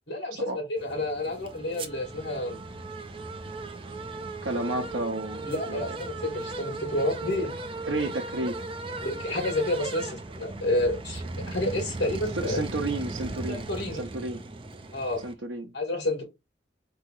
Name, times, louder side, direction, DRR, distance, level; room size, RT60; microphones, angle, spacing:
voice 1, 0.1-2.6 4.4-4.7 5.4-7.5 9.0-12.6 13.5-14.0 14.9-15.2 15.7-16.2, left 1 dB, 65° left, 2.5 m, -30 dB
sound 1, 0.8-15.3, right 2 dB, 30° right, 0.5 m, -37 dB
voice 2, 4.4-5.9 7.9-8.6 12.3-13.6 14.0-14.4 15.2-15.7, right 2 dB, 75° right, 0.7 m, -31 dB
4.1 x 2.8 x 3.7 m
head